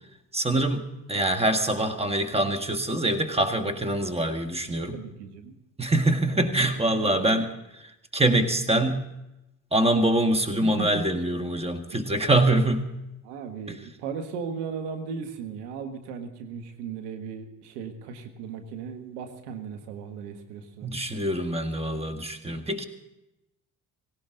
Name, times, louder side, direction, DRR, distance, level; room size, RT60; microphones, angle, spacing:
voice 1, 0.3-5.0 5.8-7.5 8.1-9.1 9.7-12.9 20.8-22.8, right 1 dB, 15° right, 7 dB, 1.7 m, -24 dB
voice 2, 4.9-5.6 6.3-6.4 6.7-7.3 10.6-11.2 13.2-20.9, right 6 dB, 85° right, 6 dB, 1.6 m, -37 dB
17.5 x 17.5 x 3.9 m, 0.92 s
hypercardioid pair, 55°, 45 cm